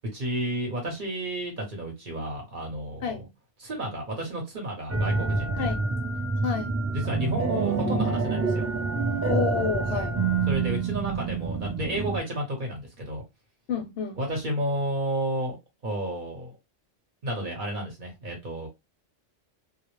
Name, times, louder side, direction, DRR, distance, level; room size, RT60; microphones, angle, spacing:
voice 1, 0.1-3.1 3.6-5.7 6.9-8.6 10.5-13.2 14.2-15.6 15.8-16.5 17.2-18.7, right 1 dB, 45° right, 0.9 m, -31 dB
sound 1, 4.9-12.2, right 4 dB, 20° right, 0.4 m, -27 dB
voice 2, 5.6-5.9 6.4-6.7 9.3-10.2 13.7-14.2, left 6 dB, 65° left, 0.7 m, -29 dB
2.2 x 2.0 x 2.9 m
omnidirectional pair, 1.3 m